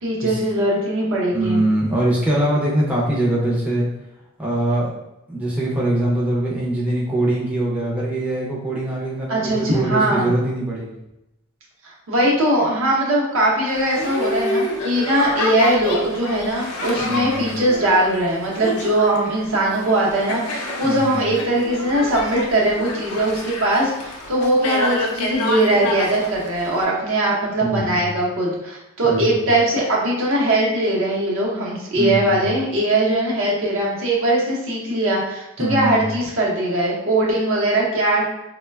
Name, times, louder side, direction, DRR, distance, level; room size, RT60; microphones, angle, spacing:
voice 1, 0.0-1.6 9.3-10.3 12.1-38.2, right 1 dB, 65° right, -3 dB, 0.7 m, -20 dB
voice 2, 1.3-3.9 4.4-4.9 5.3-10.9 17.0-17.5 20.8-21.3 27.6-28.1 29.0-29.2 32.0-32.3 35.6-36.0, right 1 dB, 5° right, -6 dB, 0.4 m, -22 dB
Boat Water vehicle, 13.7-26.8, left 1 dB, 85° left, 0.5 m, -28 dB
3.1 x 2.1 x 2.2 m, 0.90 s
head